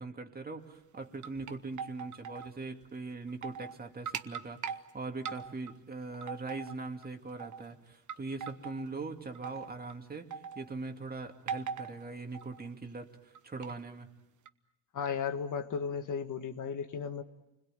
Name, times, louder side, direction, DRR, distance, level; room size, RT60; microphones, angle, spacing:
voice 1, 0.0-14.1, right 3 dB, 25° right, 4 dB, 2.5 m, -41 dB
sound 1, 0.9-2.5 2.8-2.9 3.3-3.8 4.1-4.8 5.2-5.8 6.1-7.1 7.4-7.7 8.1-8.8 9.3-9.9 10.3-10.7 11.5-12.0 12.3-12.7 13.3-13.7 14.5-14.6, right 7 dB, 55° right, 1.3 m, -40 dB
voice 2, 14.9-17.2, left 6 dB, 55° left, 7 dB, 1.8 m, -35 dB
29.5 x 21.5 x 9.1 m, 0.94 s
cardioid pair, 125°, 36 cm